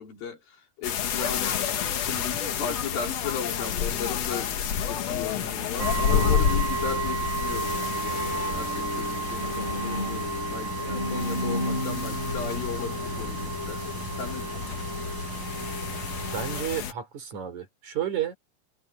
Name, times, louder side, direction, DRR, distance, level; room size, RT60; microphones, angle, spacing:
voice 1, 0.0-13.8 14.2-14.8, left 6 dB, 85° left, 5.6 m, -36 dB
sound 1, 0.8-16.9, left 8 dB, 55° left, 2.2 m, -30 dB
sound 2, 5.8-16.6, right 3 dB, 75° right, 9.3 m, -32 dB
Bowed string instrument, 7.9-13.6, left 1 dB, 15° left, 5.6 m, -35 dB
voice 2, 9.1-9.4 16.3-18.3, right 10 dB, 55° right, 4.9 m, -32 dB
omnidirectional pair, 4.1 m